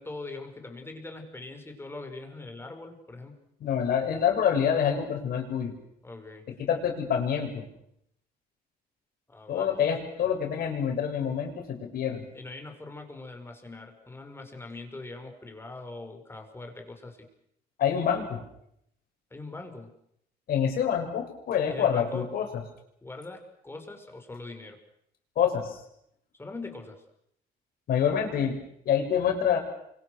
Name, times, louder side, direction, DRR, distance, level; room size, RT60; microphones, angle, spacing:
voice 1, 0.0-3.4 6.0-6.5 9.3-9.8 12.3-17.3 19.3-19.9 21.7-22.3 23.0-24.8 26.4-27.0, left 2 dB, 15° left, 5 dB, 5.7 m, -42 dB
voice 2, 3.6-5.8 6.5-7.7 9.5-12.3 17.8-18.4 20.5-22.5 25.4-25.8 27.9-28.6 28.8-29.6, left 8 dB, 60° left, 4 dB, 6.9 m, -26 dB
29.5 x 25.0 x 6.6 m, 0.73 s
cardioid pair, 110°, 17 cm